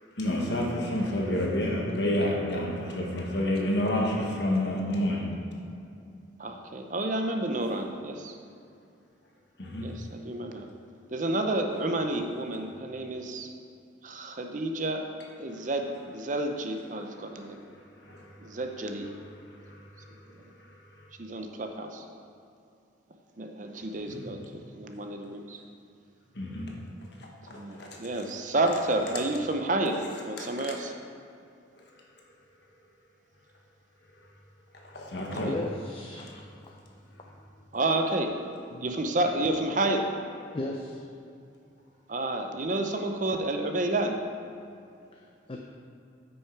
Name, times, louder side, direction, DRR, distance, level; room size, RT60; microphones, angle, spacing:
voice 1, 0.2-5.2 9.6-9.9 18.1-18.3 24.1-24.2 26.3-26.7 27.5-27.9 30.4-30.5 34.9-35.5 38.7-38.8, left 1 dB, 60° left, -1 dB, 1.4 m, -29 dB
voice 2, 6.4-8.4 9.8-10.7 11.1-13.5 14.0-15.0 15.4-17.6 18.4-19.1 21.2-22.1 23.4-25.6 27.5-30.9 35.2-35.5 37.7-38.3 38.8-40.1 42.1-44.2, right 2 dB, 40° right, 4 dB, 0.6 m, -30 dB
voice 3, 35.5-36.7 37.3-37.4 40.5-41.0 45.1-45.6, left 2 dB, 30° left, 0 dB, 0.5 m, -36 dB
9.4 x 6.3 x 4.6 m, 2.5 s
head